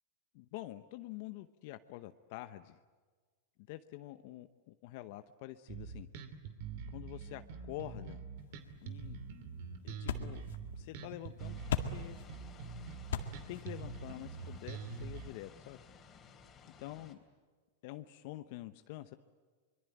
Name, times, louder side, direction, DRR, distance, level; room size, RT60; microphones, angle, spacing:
voice 1, 0.3-2.8 3.7-6.1 6.9-8.2 8.8-9.2 9.8-10.4 10.8-12.2 13.5-15.8 16.8-17.2 17.8-19.2, left 15 dB, 60° left, 10 dB, 0.9 m, -47 dB
Bass guitar, 5.7-15.3, right 5 dB, 60° right, 2.7 m, -45 dB
sound 1, 8.4-15.5, left 7 dB, 80° left, 2.0 m, -43 dB
sound 2, 11.4-17.1, left 6 dB, 30° left, 3.3 m, -57 dB
25.0 x 22.5 x 9.2 m, 1.4 s
hypercardioid pair, 115°, 0 cm